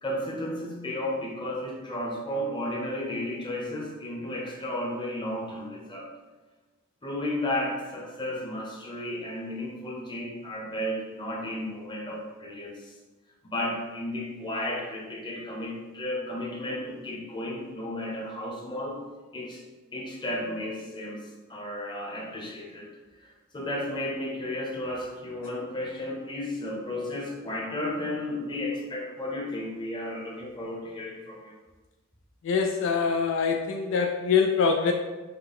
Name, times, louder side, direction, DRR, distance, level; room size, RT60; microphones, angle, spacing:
voice 1, 0.0-6.1 7.0-12.9 13.4-19.0 19.3-19.6 19.9-22.9 23.2-31.6, left 1 dB, 20° left, -3 dB, 0.9 m, -33 dB
voice 2, 32.4-34.9, left 5 dB, 65° left, 3 dB, 0.3 m, -24 dB
5.7 x 2.2 x 3.5 m, 1.2 s
head